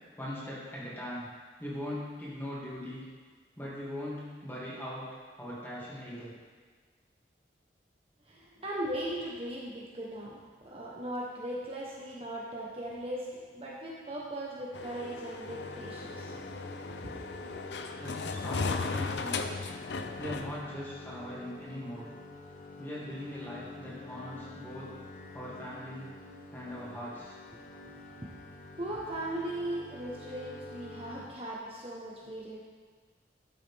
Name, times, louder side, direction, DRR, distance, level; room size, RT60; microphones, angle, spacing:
voice 1, 0.2-1.3 1.6-3.0 3.6-5.1 5.4-6.3 18.0-19.5 20.2-22.1 22.8-24.9 25.3-26.1 26.5-27.4, equal, 10° left, -8 dB, 2.4 m, -40 dB
voice 2, 8.2-16.4 16.7-17.3 27.5-27.6 28.2-28.3 28.8-32.6, right 1 dB, 30° right, -4 dB, 1.1 m, -38 dB
sound 1, 14.7-20.6, left 4 dB, 75° left, 0.6 m, -36 dB
sound 2, 15.5-31.3, left 2 dB, 45° left, 0.9 m, -47 dB
12.0 x 7.3 x 3.5 m, 1.5 s
head